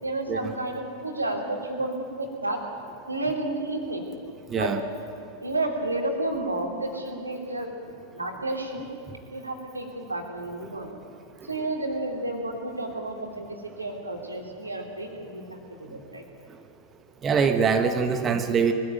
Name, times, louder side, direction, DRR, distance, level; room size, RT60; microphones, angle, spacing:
voice 1, 0.0-2.6 3.1-4.1 4.5-4.8 5.4-7.7 8.1-8.9 9.3-10.9 11.5-16.2, right 2 dB, 80° right, 1 dB, 3.1 m, -31 dB
voice 2, 4.5-4.8 10.6-10.7 17.2-18.7, right 6 dB, 25° right, 6 dB, 1.3 m, -23 dB
22.0 x 14.0 x 9.2 m, 2.5 s
figure-of-eight pair, 90°, 0 cm